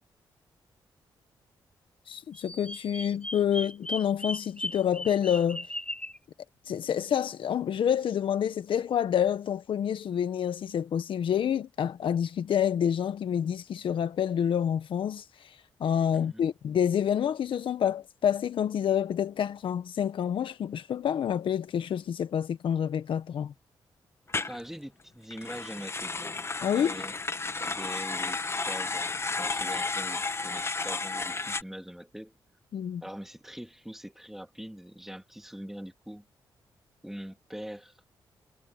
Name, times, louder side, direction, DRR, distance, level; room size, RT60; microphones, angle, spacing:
voice 1, 2.1-5.7 6.7-15.2 15.8-23.5 26.6-27.0 32.7-33.0, left 9 dB, 70° left, 1.6 m, -28 dB
Bird vocalization bird call bird song, 2.3-6.2, left 1 dB, 15° left, 5.0 m, -37 dB
voice 2, 16.1-16.4 24.4-26.4 26.7-27.2 27.6-32.3 33.0-36.2 37.0-38.0, equal, 5° right, 3.1 m, -43 dB
sound 1, 24.3-24.6 25.3-31.6, left 3 dB, 30° left, 1.4 m, -32 dB
cardioid pair, 65°, 9 cm